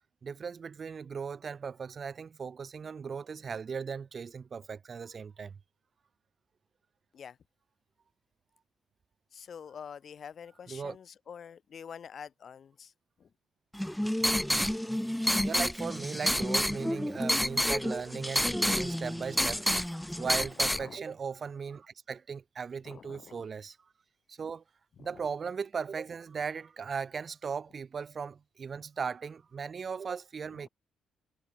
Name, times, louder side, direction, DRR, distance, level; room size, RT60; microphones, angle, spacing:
voice 1, 0.2-5.6 10.7-11.0 14.6-14.7 15.4-23.8 24.3-24.6 25.0-30.7, right 6 dB, 45° right, 4.1 m, -38 dB
voice 2, 9.3-12.9 13.2-13.3 20.7-21.1 22.8-23.4 25.0-25.2 30.6-30.7, left 7 dB, 50° left, 7.0 m, -47 dB
sound 1, 13.7-20.8, equal, 5° left, 1.5 m, -29 dB
cardioid pair, 90°, 0 cm